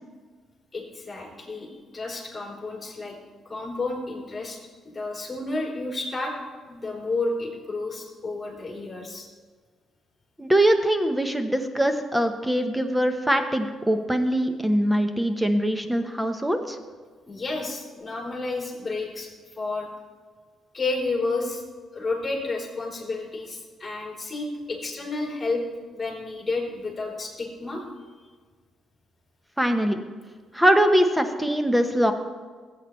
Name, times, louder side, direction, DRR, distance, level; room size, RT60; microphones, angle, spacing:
voice 1, 0.7-1.7 1.9-3.1 3.5-4.6 4.8-6.3 6.7-9.3 17.3-19.3 19.6-19.9 20.7-21.6 21.9-25.6 25.9-27.8, left 3 dB, 25° left, -2 dB, 3.5 m, -31 dB
voice 2, 10.4-16.8 29.6-30.0 30.5-32.1, right 1 dB, 5° right, 7 dB, 1.0 m, -22 dB
15.0 x 8.6 x 3.2 m, 1.5 s
cardioid pair, 90°, 0 cm